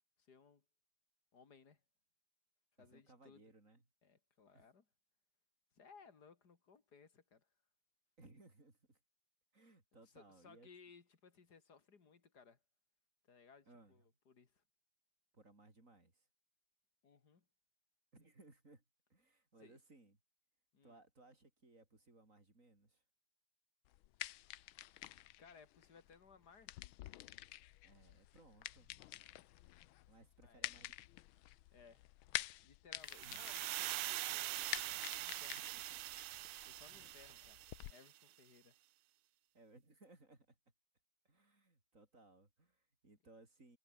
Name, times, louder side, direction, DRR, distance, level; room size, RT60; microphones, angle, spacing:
voice 1, 0.2-0.6 1.3-1.8 2.8-3.4 4.0-4.9 5.7-7.5 10.1-12.6 13.3-14.6 17.0-17.5 19.6-19.8 20.7-21.0 25.4-26.8 30.4-30.7 31.7-32.0 32.6-35.6 36.7-37.6 37.9-38.8, left 5 dB, 45° left, 2.9 m, -63 dB
voice 2, 2.8-3.8 4.5-4.7 8.2-9.0 9.5-10.7 13.7-14.0 15.3-16.3 18.1-18.8 19.1-20.2 20.8-23.0 27.8-28.9 30.1-30.9 33.2-33.4 35.5-36.0 39.5-40.6 41.2-43.8, right 2 dB, 35° right, 5.0 m, -64 dB
sound 1, 23.9-37.9, left 15 dB, 75° left, 1.4 m, -49 dB
sound 2, 33.1-38.1, right 16 dB, 85° right, 1.6 m, -43 dB
omnidirectional pair, 2.4 m